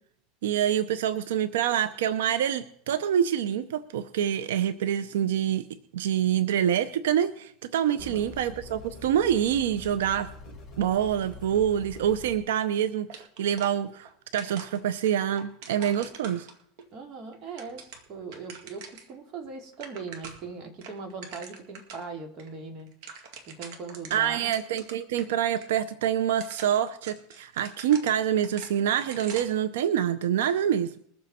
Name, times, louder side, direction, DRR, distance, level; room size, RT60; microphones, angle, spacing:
voice 1, 0.4-5.7 5.9-10.3 10.8-16.5 24.1-31.0, right 10 dB, 90° right, 14 dB, 0.7 m, -26 dB
voice 2, 7.9-8.4 16.9-17.8 18.1-22.9 23.5-24.5, right 4 dB, 40° right, 3 dB, 2.6 m, -40 dB
sound 1, 8.0-12.4, left 3 dB, 10° left, 5.1 m, -45 dB
sound 2, 13.1-14.1 14.4-16.8 17.3-19.1 19.4-19.5 19.7-20.5 20.8-22.1 22.4-22.5 22.8-25.3 25.6-25.7 26.2-29.6, right 5 dB, 60° right, 2.0 m, -45 dB
22.0 x 7.5 x 4.3 m, 0.66 s
supercardioid pair, 140°, 0 cm